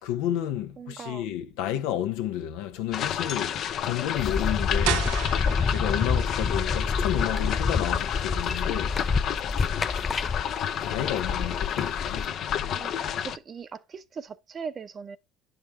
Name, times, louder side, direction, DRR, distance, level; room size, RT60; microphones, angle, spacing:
voice 1, 0.0-5.2 5.7-9.0 10.8-12.8, left 11 dB, 85° left, 1.1 m, -31 dB
voice 2, 0.8-1.2 12.6-15.2, right 6 dB, 35° right, 0.9 m, -40 dB
sound 1, 2.9-13.4, left 9 dB, 55° left, 0.8 m, -30 dB
sound 2, 4.2-12.3, left 4 dB, 25° left, 0.4 m, -28 dB
sound 3, 4.8-10.5, right 12 dB, 85° right, 0.7 m, -37 dB
11.0 x 5.2 x 2.3 m
supercardioid pair, 95°, 0 cm